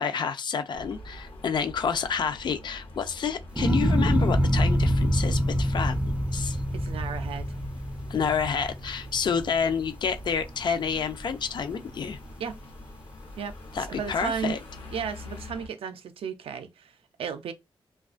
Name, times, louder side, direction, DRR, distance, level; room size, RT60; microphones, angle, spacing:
voice 1, 0.0-6.6 8.1-12.2 13.7-14.6, left 6 dB, 55° left, 0.4 m, -29 dB
sound 1, 0.7-15.7, left 1 dB, 75° left, 0.7 m, -45 dB
sound 2, 3.6-9.9 10.3-10.9, equal, 15° right, 0.4 m, -25 dB
voice 2, 6.7-7.5 12.4-12.6 13.4-13.6 13.9-14.6 14.9-17.5, right 7 dB, 85° right, 0.4 m, -34 dB
2.4 x 2.2 x 2.4 m
wide cardioid pair, 130°, 9 cm